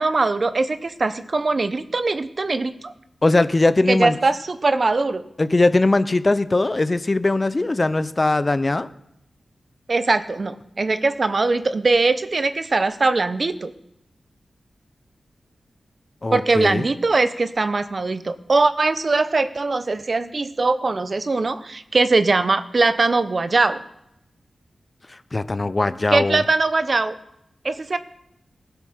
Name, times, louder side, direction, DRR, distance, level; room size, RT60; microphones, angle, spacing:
voice 1, 0.0-2.9 3.9-5.2 9.9-13.7 16.3-23.8 26.1-27.1 27.6-28.0, right 3 dB, 55° right, 12 dB, 0.8 m, -21 dB
voice 2, 3.2-4.2 5.4-8.9 16.2-16.8 25.3-26.4, left 2 dB, 35° left, 14 dB, 0.7 m, -20 dB
16.0 x 8.2 x 6.6 m, 0.82 s
cardioid pair, 45°, 0 cm